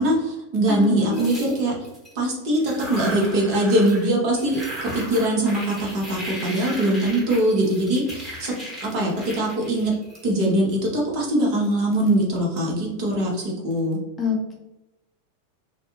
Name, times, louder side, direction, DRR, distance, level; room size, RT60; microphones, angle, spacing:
voice 1, 0.0-1.8 2.1-8.5 8.8-9.9 10.2-14.0, right 1 dB, 45° right, -2 dB, 0.9 m, -22 dB
voice 2, 0.7-1.3 14.2-14.6, left 5 dB, 15° left, -2 dB, 0.7 m, -27 dB
sound 1, 1.1-2.1 2.6-4.1 4.4-10.7, right 1 dB, 10° right, 1.1 m, -36 dB
2.5 x 2.2 x 2.9 m, 0.96 s
figure-of-eight pair, 90°, 0 cm